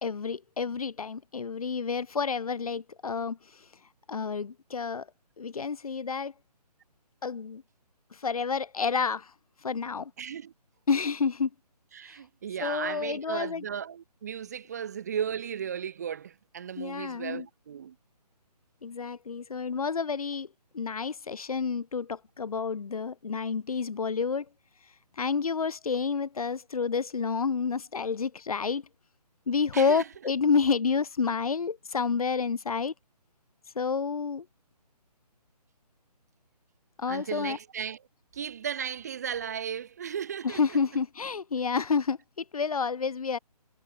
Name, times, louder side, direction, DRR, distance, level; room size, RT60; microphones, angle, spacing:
voice 1, 0.0-3.4 4.1-5.0 5.4-6.3 7.2-7.6 8.2-9.3 9.6-10.1 10.9-11.5 12.6-13.6 16.8-17.5 18.8-20.5 20.7-24.5 25.2-28.8 29.5-32.9 33.8-34.4 37.0-37.6 40.4-43.4, left 5 dB, 60° left, 0.9 m, -29 dB
voice 2, 10.2-10.5 11.9-18.0 29.7-30.1 37.1-38.0 38.3-40.8, right 8 dB, 25° right, 0.6 m, -35 dB
figure-of-eight pair, 145°, 21 cm